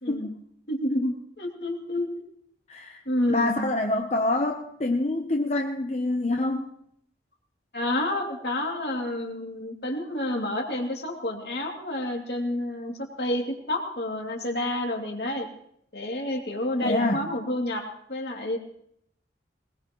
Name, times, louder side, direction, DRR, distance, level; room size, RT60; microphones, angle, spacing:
voice 1, 0.0-0.3 0.7-2.2 3.1-3.7 7.7-15.5 15.9-18.6, left 1 dB, 65° left, 0 dB, 2.6 m, -29 dB
voice 2, 2.7-3.0 3.3-6.6 16.8-17.2, left 2 dB, 35° left, 3 dB, 0.7 m, -26 dB
20.5 x 20.0 x 3.0 m, 0.70 s
head